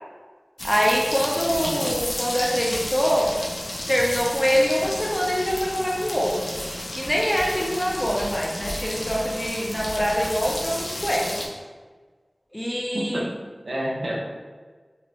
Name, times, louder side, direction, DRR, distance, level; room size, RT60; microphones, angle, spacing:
sound 1, 0.6-11.5, left 1 dB, 80° left, 0.5 m, -32 dB
voice 1, 0.6-3.3 3.9-6.5 6.9-11.3 12.5-13.3, equal, 10° left, -3 dB, 0.7 m, -24 dB
voice 2, 1.6-1.9 12.9-13.3 13.6-14.3, right 1 dB, 85° right, -3 dB, 0.5 m, -29 dB
3.0 x 2.6 x 3.0 m, 1.5 s
wide cardioid pair, 50°, 0 cm